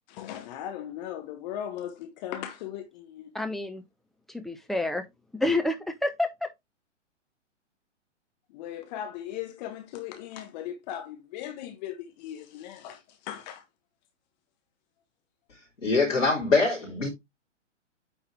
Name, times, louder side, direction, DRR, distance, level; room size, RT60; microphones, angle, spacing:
voice 1, 0.1-3.3 8.5-13.6, left 11 dB, 35° left, 1.1 m, -38 dB
voice 2, 3.3-3.8 4.3-5.1 5.3-6.5, left 2 dB, ahead, 0.5 m, -28 dB
voice 3, 15.8-17.1, left 3 dB, 75° left, 3.7 m, -23 dB
9.0 x 4.0 x 3.3 m
hypercardioid pair, 120°, 36 cm